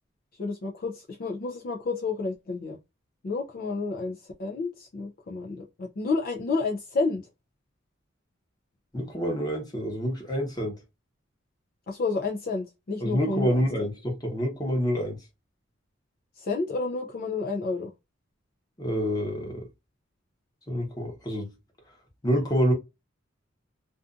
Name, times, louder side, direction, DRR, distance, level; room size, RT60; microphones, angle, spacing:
voice 1, 0.4-2.8 3.2-7.2 11.9-13.6 16.4-17.9, left 3 dB, 45° left, 0.4 m, -30 dB
voice 2, 8.9-10.8 13.0-15.2 18.8-19.7 20.7-21.5 22.2-22.7, equal, 20° left, 0.9 m, -27 dB
2.5 x 2.4 x 2.4 m
head